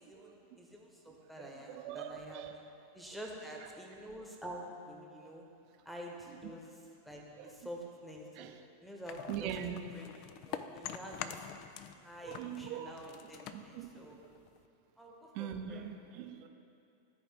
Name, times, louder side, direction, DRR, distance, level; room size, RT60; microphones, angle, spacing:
voice 1, 0.0-2.5 2.9-5.5 5.8-6.7 7.0-8.3 8.8-9.5 9.9-10.1 10.5-11.4 12.0-14.2 15.0-15.9 16.4-16.5, equal, ahead, -2 dB, 1.2 m, -48 dB
voice 2, 1.4-2.5 7.3-7.5 8.4-8.6 9.3-9.9 10.7-10.8 12.2-13.0 13.5-14.3 15.3-16.5, right 9 dB, 45° right, 6 dB, 0.6 m, -42 dB
sound 1, 9.1-12.0 12.3-14.7, left 9 dB, 40° left, 0.4 m, -45 dB
14.0 x 4.8 x 3.4 m, 2.6 s
figure-of-eight pair, 90°, 0 cm